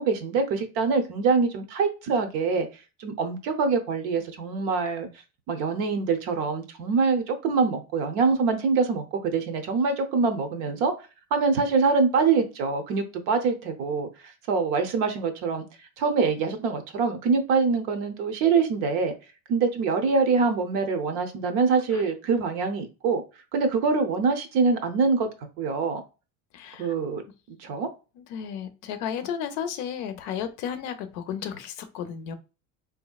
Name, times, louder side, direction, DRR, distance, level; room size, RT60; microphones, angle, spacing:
voice 1, 0.0-2.7 3.0-5.1 5.5-10.9 11.3-14.1 14.5-15.6 16.0-19.1 19.5-23.2 23.5-25.3 25.6-26.0 26.8-27.2 27.5-27.9, right 4 dB, 60° right, 7 dB, 0.7 m, -24 dB
voice 2, 26.5-26.9 28.2-32.4, left 8 dB, 55° left, 10 dB, 0.5 m, -33 dB
4.1 x 2.7 x 2.3 m, 0.31 s
cardioid pair, 170°, 36 cm